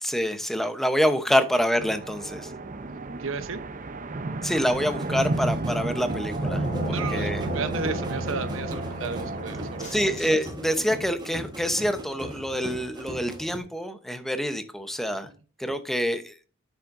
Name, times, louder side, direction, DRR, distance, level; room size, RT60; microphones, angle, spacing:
voice 1, 0.0-2.5 4.4-7.4 9.9-15.3 15.6-16.3, equal, ahead, 0.8 m, -26 dB
sound 1, 1.8-10.1, right 2 dB, 40° right, 0.7 m, -32 dB
voice 2, 3.2-3.6 6.9-10.0 15.3-15.4, right 4 dB, 85° right, 0.9 m, -33 dB
sound 2, 4.8-13.6, equal, 20° right, 1.3 m, -39 dB
sound 3, 6.4-10.9, equal, 35° left, 3.9 m, -35 dB
9.4 x 7.2 x 2.6 m
head